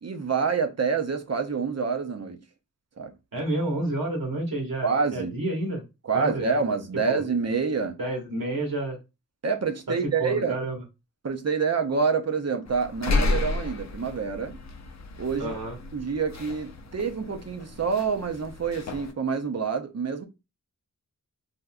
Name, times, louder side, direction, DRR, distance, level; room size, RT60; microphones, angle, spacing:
voice 1, 0.0-2.4 3.0-3.1 4.8-5.3 6.0-8.0 9.4-10.6 11.2-14.6 15.2-15.5 15.9-20.3, right 5 dB, 50° right, 0.6 m, -27 dB
voice 2, 3.3-5.8 6.1-6.6 7.1-7.2 8.0-9.0 10.2-10.8 15.4-15.7, right 2 dB, 85° right, 1.4 m, -29 dB
sound 1, 12.7-19.1, left 3 dB, 55° left, 0.5 m, -32 dB
3.5 x 2.6 x 2.2 m
wide cardioid pair, 65°, 33 cm